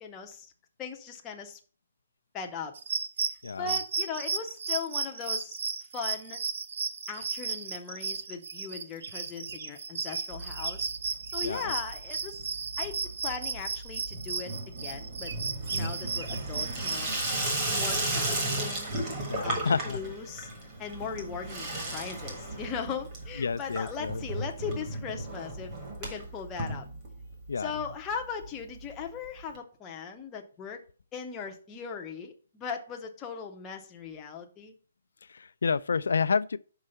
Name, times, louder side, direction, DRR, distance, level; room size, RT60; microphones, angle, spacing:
voice 1, 0.0-0.5 0.8-1.6 2.3-2.8 3.6-5.6 5.9-6.4 7.1-10.9 11.3-12.4 12.8-15.3 15.7-17.1 17.7-19.0 19.4-20.5 20.8-25.7 26.0-26.9 27.6-30.8 31.1-34.7, left 6 dB, 10° left, 0.7 m, -38 dB
sound 1, 2.7-17.0, right 5 dB, 50° right, 0.6 m, -34 dB
Water tap faucet / Sink (filling or washing), 10.3-11.1 11.3-11.9 12.2-27.5 27.8-27.9 28.1-28.2 28.4-28.5 29.5-29.6, right 2 dB, 20° right, 1.4 m, -35 dB
voice 2, 11.4-11.7 19.3-20.0 23.4-24.2 27.5-27.7 35.3-36.6, left 5 dB, 85° left, 0.4 m, -29 dB
5.6 x 4.7 x 6.4 m
hypercardioid pair, 175°, 0 cm